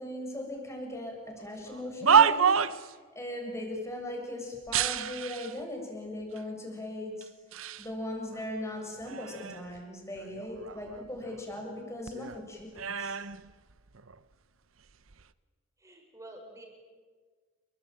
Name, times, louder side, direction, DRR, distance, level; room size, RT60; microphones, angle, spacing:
voice 1, 0.0-2.5 3.2-7.3 7.8-13.2, left 1 dB, 15° left, 1 dB, 7.2 m, -38 dB
sound 1, 1.6-2.9 4.7-5.6 6.4-6.5 7.2-7.9 8.3-9.8 10.1-11.8 12.1-14.2 14.9-15.2, right 7 dB, 75° right, 0.9 m, -29 dB
voice 2, 15.8-16.7, right 1 dB, 15° right, 2 dB, 6.2 m, -48 dB
29.0 x 22.5 x 9.1 m, 1.5 s
head